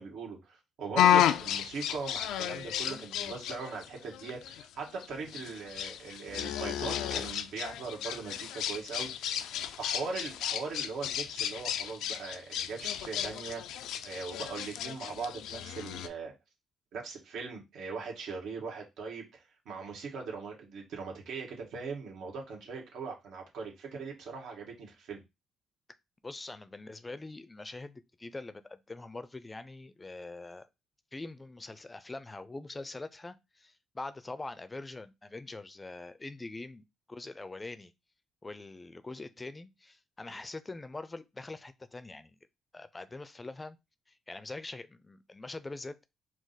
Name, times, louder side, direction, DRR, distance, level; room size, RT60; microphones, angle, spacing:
voice 1, 0.0-13.8 14.0-16.3 16.9-19.3 19.6-25.2, right 4 dB, 80° right, 1.4 m, -40 dB
sound 1, 1.0-16.1, left 10 dB, 85° left, 0.3 m, -32 dB
voice 2, 26.2-30.7 31.1-37.9 38.4-42.4 42.7-43.8 44.1-46.0, left 2 dB, 20° left, 0.4 m, -43 dB
5.0 x 2.0 x 4.0 m
cardioid pair, 90°, 0 cm